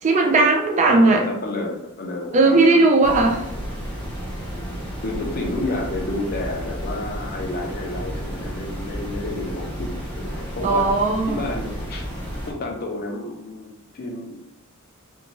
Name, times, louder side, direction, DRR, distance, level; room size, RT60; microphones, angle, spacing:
voice 1, 0.0-1.2 2.3-3.4 10.6-11.4, right 3 dB, 30° right, 2 dB, 0.4 m, -17 dB
voice 2, 0.9-3.3 5.0-10.9 11.3-12.0 12.4-14.5, left 2 dB, 45° left, 0 dB, 0.5 m, -30 dB
sound 1, 3.0-12.5, equal, 5° left, 0.7 m, -32 dB
2.6 x 2.2 x 2.9 m, 0.76 s
head